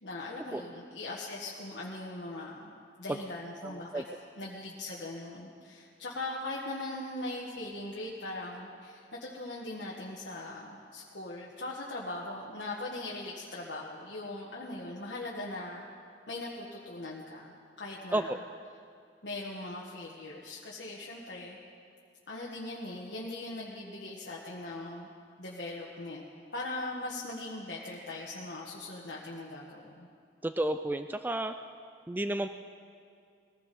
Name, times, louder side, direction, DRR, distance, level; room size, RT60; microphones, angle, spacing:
voice 1, 0.0-4.0 4.4-15.9 16.3-18.3 19.2-21.6 22.3-25.1 25.4-26.2 26.5-30.1, left 2 dB, 70° left, -4 dB, 1.5 m, -40 dB
voice 2, 3.6-4.0 18.1-18.4 30.4-31.5 32.1-32.5, right 1 dB, 10° right, 9 dB, 0.3 m, -31 dB
21.5 x 15.5 x 4.2 m, 2.4 s
head